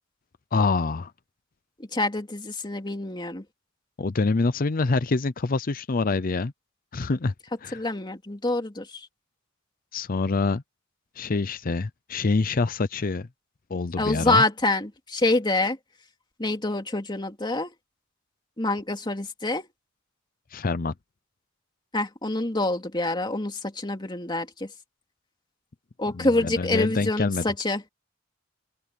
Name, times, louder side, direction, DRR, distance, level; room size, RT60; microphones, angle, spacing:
voice 1, 0.5-1.1 4.0-6.5 6.9-7.3 7.6-7.8 9.9-10.6 11.2-13.3 13.7-14.4 20.5-20.9 26.1-27.4, left 3 dB, 45° left, 0.6 m, -26 dB
voice 2, 1.9-3.4 7.7-9.1 14.0-15.8 16.4-17.7 18.6-19.7 21.9-24.7 26.0-27.8, left 2 dB, 25° left, 2.6 m, -26 dB
open air
head